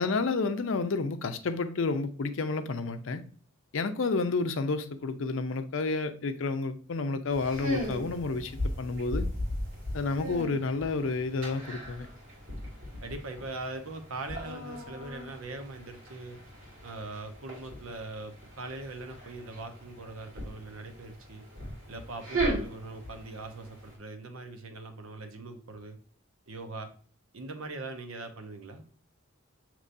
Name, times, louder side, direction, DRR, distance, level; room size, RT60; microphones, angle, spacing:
voice 1, 0.0-3.2 3.7-9.3 9.9-12.1, left 3 dB, 70° left, 0.5 m, -30 dB
sound 1, 7.3-24.0, equal, 60° right, 2.0 m, -38 dB
voice 2, 13.0-16.4 16.8-21.4 21.9-26.0 26.5-26.9 27.3-28.8, right 2 dB, 90° right, 0.8 m, -41 dB
6.6 x 3.0 x 2.5 m
head